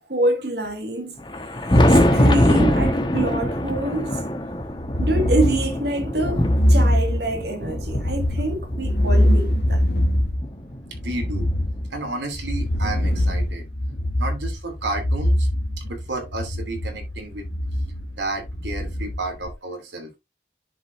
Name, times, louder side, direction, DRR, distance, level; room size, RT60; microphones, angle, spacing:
voice 1, 0.1-1.2 1.7-4.2 5.0-9.8, right 1 dB, 65° right, 2.0 m, -26 dB
Thunder, 1.2-9.8 10.4-12.1 13.3-13.4 13.9-14.0 15.9-16.0 17.3-17.4 19.0-19.1, left 1 dB, 25° left, 1.3 m, -23 dB
sound 1, 4.5-19.5, equal, 70° left, 1.3 m, -23 dB
voice 2, 10.9-11.5 11.9-13.6 14.1-15.5 15.8-17.5 18.2-20.1, right 2 dB, 85° right, 2.7 m, -31 dB
10.5 x 5.2 x 2.6 m
head